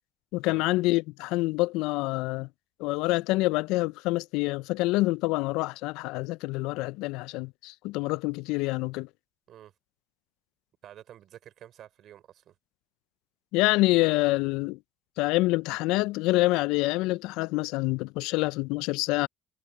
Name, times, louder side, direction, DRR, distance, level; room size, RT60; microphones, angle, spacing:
voice 1, 0.3-2.5 2.8-9.1 13.5-14.8 15.2-19.3, left 21 dB, 80° left, 0.3 m, -26 dB
voice 2, 10.8-12.6, right 11 dB, 65° right, 5.4 m, -50 dB
supercardioid pair, 65°, 0 cm